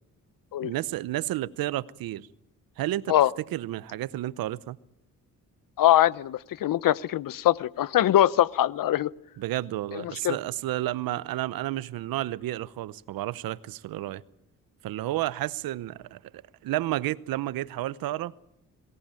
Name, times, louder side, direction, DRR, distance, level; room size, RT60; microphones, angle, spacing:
voice 1, 0.6-2.3 2.8-3.1 3.5-4.8 9.4-14.2 14.8-18.3, right 15 dB, 85° right, 0.8 m, -31 dB
voice 2, 5.8-9.1 10.2-10.4, left 12 dB, 70° left, 0.8 m, -22 dB
22.5 x 17.5 x 9.0 m
cardioid pair, 65°, 34 cm